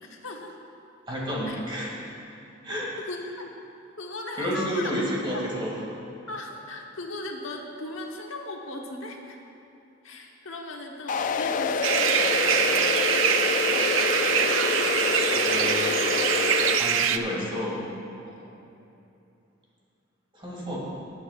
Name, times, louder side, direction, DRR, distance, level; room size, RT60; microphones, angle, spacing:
voice 1, 0.0-0.5 1.5-1.6 3.0-3.5 4.0-4.9 5.3-5.4 6.3-9.4 10.0-12.7 15.1-16.1 18.3-18.6, left 2 dB, 85° left, 1 dB, 1.2 m, -38 dB
voice 2, 1.1-1.9 2.6-2.9 4.4-5.8 15.3-16.1 16.8-17.8 20.3-20.8, equal, 25° right, -5 dB, 2.4 m, -30 dB
sound 1, 11.1-16.8, left 5 dB, 40° left, 0.3 m, -27 dB
sound 2, 11.8-17.2, right 8 dB, 75° right, 0.4 m, -24 dB
19.0 x 8.4 x 2.5 m, 2.8 s
head